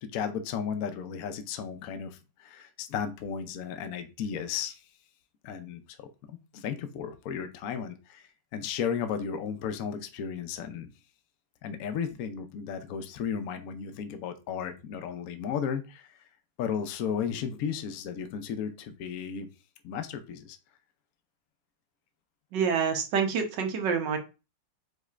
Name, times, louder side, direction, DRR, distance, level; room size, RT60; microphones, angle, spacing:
voice 1, 0.0-4.8 5.4-10.9 11.6-16.1 16.6-19.5 19.8-20.6, left 7 dB, 65° left, 8 dB, 1.0 m, -34 dB
voice 2, 22.5-24.2, right 6 dB, 70° right, 5 dB, 1.6 m, -27 dB
5.2 x 4.2 x 2.4 m, 0.28 s
omnidirectional pair, 2.0 m